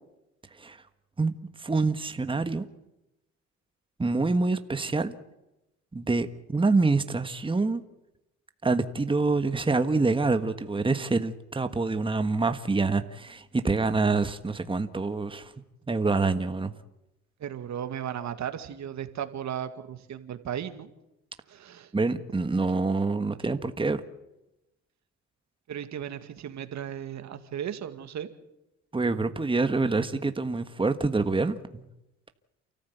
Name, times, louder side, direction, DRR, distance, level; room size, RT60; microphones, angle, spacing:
voice 1, 1.6-2.7 4.0-5.1 5.9-7.8 8.6-15.5 15.9-16.7 21.9-24.0 28.9-31.9, right 3 dB, 15° right, 9 dB, 1.5 m, -26 dB
voice 2, 17.4-20.9 21.5-21.9 25.7-28.3, right 9 dB, 65° right, 9 dB, 2.2 m, -35 dB
29.0 x 14.5 x 8.2 m, 0.94 s
cardioid pair, 90°, 30 cm